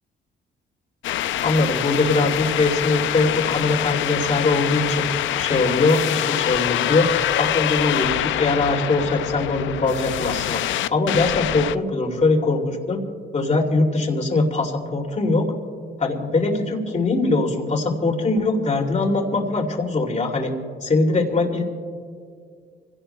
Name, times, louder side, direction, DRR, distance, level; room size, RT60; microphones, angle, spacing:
sound 1, 1.0-11.7, left 13 dB, 75° left, 0.5 m, -25 dB
voice 1, 1.4-5.0 5.4-7.1 7.4-10.6 10.9-13.0 13.3-15.5 16.0-20.5 20.8-21.6, left 3 dB, 35° left, 2 dB, 2.6 m, -21 dB
27.0 x 17.0 x 2.2 m, 2.1 s
cardioid pair, 90°, 20 cm